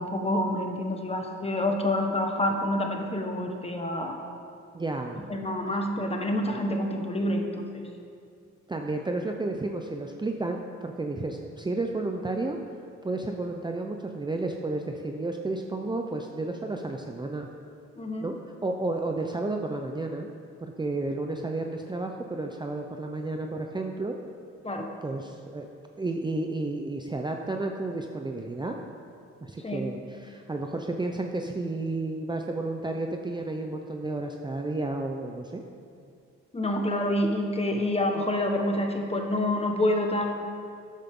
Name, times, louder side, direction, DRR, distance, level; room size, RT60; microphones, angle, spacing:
voice 1, 0.0-4.2 5.3-7.8 18.0-18.3 24.6-24.9 29.6-29.9 36.5-40.4, left 1 dB, 20° left, 3 dB, 1.4 m, -27 dB
voice 2, 4.7-5.2 8.7-12.6 13.0-17.5 18.2-18.3 18.6-20.3 20.6-24.2 25.0-25.7 26.0-28.8 29.4-35.6, right 2 dB, 15° right, 3 dB, 0.7 m, -32 dB
13.0 x 9.0 x 3.8 m, 2.4 s
cardioid pair, 90°, 30 cm